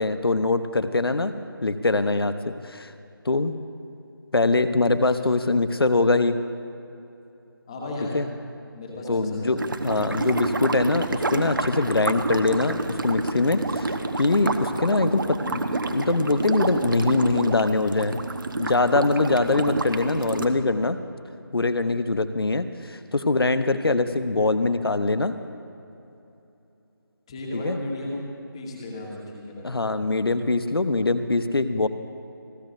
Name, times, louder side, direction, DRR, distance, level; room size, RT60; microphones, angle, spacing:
voice 1, 0.0-1.3 1.6-2.9 3.2-3.5 4.3-6.4 8.1-8.3 9.1-12.8 13.0-18.2 18.6-21.0 21.5-25.3 27.5-27.8 29.6-31.9, left 3 dB, 80° left, 11 dB, 0.9 m, -23 dB
voice 2, 7.7-8.2 8.7-9.6 27.3-29.7, left 1 dB, 15° left, -2 dB, 1.3 m, -34 dB
sound 1, 9.6-20.5, right 2 dB, 60° right, 1.0 m, -28 dB
29.5 x 12.5 x 2.6 m, 2.8 s
figure-of-eight pair, 170°, 12 cm